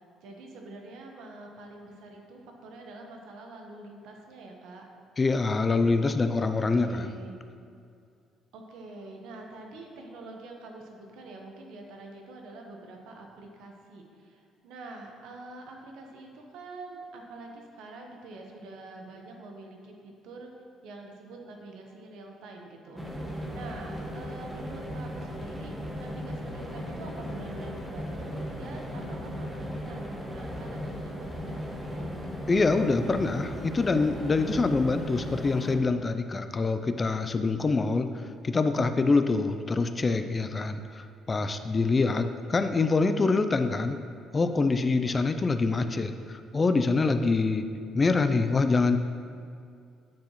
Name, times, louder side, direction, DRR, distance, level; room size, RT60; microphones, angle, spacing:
voice 1, 0.0-4.9 6.5-7.4 8.5-20.5 20.8-25.7 26.0-32.1, right 2 dB, 80° right, 1 dB, 1.0 m, -46 dB
voice 2, 5.2-7.1 32.5-38.1 38.4-44.0 44.3-47.7 47.9-49.0, left 3 dB, 25° left, 9 dB, 0.3 m, -25 dB
sound 1, 23.0-35.8, equal, 10° right, 0.9 m, -36 dB
9.3 x 4.7 x 3.0 m, 2.4 s
cardioid pair, 110°, 0 cm